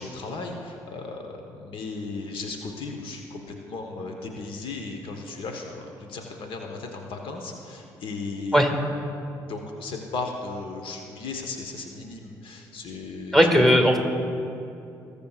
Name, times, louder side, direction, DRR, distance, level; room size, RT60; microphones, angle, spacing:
voice 1, 0.0-8.7 9.4-13.6, left 3 dB, 60° left, 3 dB, 1.1 m, -36 dB
voice 2, 13.3-14.0, equal, ahead, 3 dB, 1.9 m, -17 dB
20.5 x 6.9 x 2.4 m, 2.7 s
hypercardioid pair, 50°, 10 cm